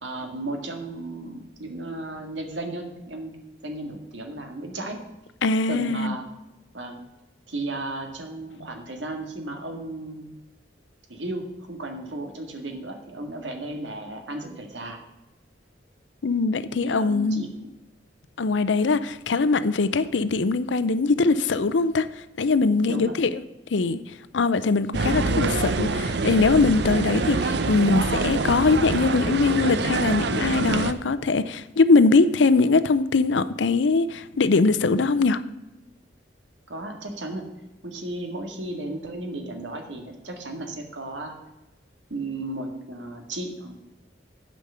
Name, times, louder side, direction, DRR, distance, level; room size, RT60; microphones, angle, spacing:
voice 1, 0.0-3.4 3.6-5.0 5.7-6.3 6.7-7.0 7.5-10.3 11.1-15.0 16.7-17.5 22.8-23.2 36.7-37.6 37.8-41.3 42.1-43.7, right 2 dB, 90° right, 1.9 m, -34 dB
voice 2, 5.4-6.1 16.2-17.5 18.4-22.1 22.4-23.4 23.7-24.0 24.3-35.4, left 3 dB, 85° left, 0.6 m, -21 dB
sound 1, 24.9-30.9, right 3 dB, 65° right, 0.6 m, -25 dB
9.9 x 5.2 x 6.8 m
head